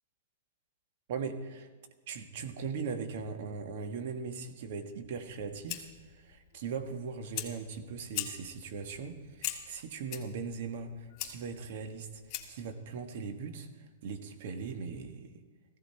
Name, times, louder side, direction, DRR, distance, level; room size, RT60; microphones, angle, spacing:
voice 1, 1.1-1.7 2.1-15.3, right 5 dB, 60° right, 7 dB, 1.5 m, -39 dB
Fire, 5.2-12.7, left 11 dB, 40° left, 1.8 m, -43 dB
15.5 x 14.5 x 4.4 m, 1.4 s
hypercardioid pair, 140°, 0 cm